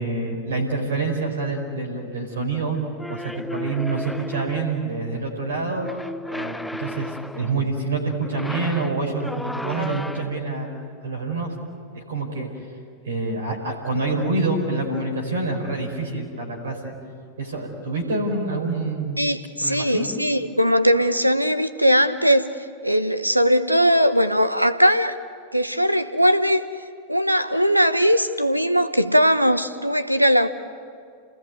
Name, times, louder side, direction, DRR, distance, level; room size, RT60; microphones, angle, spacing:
voice 1, 0.0-2.8 3.1-5.9 6.3-10.7 11.0-11.5 11.9-12.7 13.0-16.9 17.4-19.2 19.6-20.1, right 3 dB, 65° right, 1 dB, 4.8 m, -27 dB
sound 1, 3.0-4.8 5.8-7.6 8.2-10.5, left 1 dB, 5° left, 0.8 m, -34 dB
voice 2, 19.2-22.5 22.8-25.1 25.5-26.6 27.1-30.5, equal, 90° right, 12 dB, 1.1 m, -19 dB
29.0 x 19.5 x 9.3 m, 2.2 s
figure-of-eight pair, 90°, 0 cm